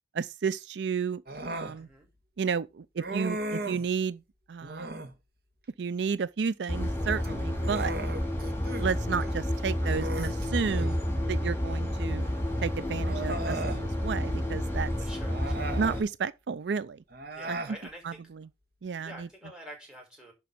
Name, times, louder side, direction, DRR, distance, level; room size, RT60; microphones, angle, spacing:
voice 1, 0.1-1.9 2.4-4.2 4.5-4.9 5.8-7.9 8.8-11.0 11.3-12.3 12.6-14.9 15.8-17.0 17.5-17.6 18.0-18.5 18.8-19.3, right 6 dB, 75° right, 0.4 m, -32 dB
Human voice, 1.3-1.8 3.0-3.9 4.6-5.2 7.1-8.9 9.2-9.3 9.8-11.0 12.2-12.3 13.0-13.8 15.2-16.1 17.1-17.8, right 1 dB, 60° right, 1.7 m, -37 dB
voice 2, 1.8-2.1 15.0-15.7 17.3-18.2 19.0-20.3, equal, 5° right, 5.6 m, -47 dB
sound 1, 6.7-16.0, left 1 dB, 15° left, 3.5 m, -30 dB
11.0 x 4.7 x 5.8 m
head